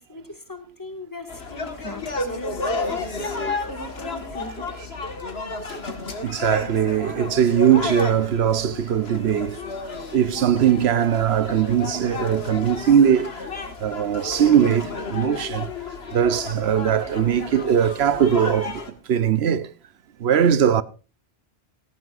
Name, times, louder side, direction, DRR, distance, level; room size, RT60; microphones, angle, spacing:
voice 1, 0.0-2.8 3.2-4.8, left 1 dB, 20° left, 2.1 m, -39 dB
sound 1, 1.3-18.9, left 3 dB, 75° left, 2.0 m, -32 dB
voice 2, 6.2-9.6 10.1-13.3 13.8-15.7 16.1-18.8 19.1-19.7 20.2-20.8, right 9 dB, 85° right, 1.0 m, -20 dB
17.0 x 15.0 x 2.5 m
omnidirectional pair, 1.0 m